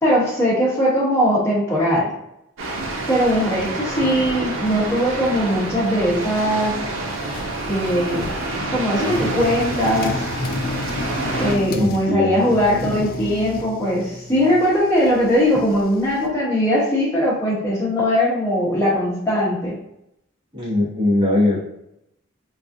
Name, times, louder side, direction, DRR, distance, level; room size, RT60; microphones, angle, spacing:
voice 1, 0.0-2.1 3.1-6.7 7.7-8.3 8.7-10.1 11.4-19.8, equal, 15° left, -7 dB, 1.1 m, -20 dB
sound 1, 2.6-11.6, right 2 dB, 85° right, 0.7 m, -28 dB
sound 2, 7.1-8.6 9.0-12.1 12.4-16.3, left 2 dB, 45° left, 0.3 m, -31 dB
voice 2, 11.7-12.6 20.5-21.6, left 2 dB, 25° right, -7 dB, 1.2 m, -20 dB
4.0 x 2.5 x 2.6 m, 0.81 s
head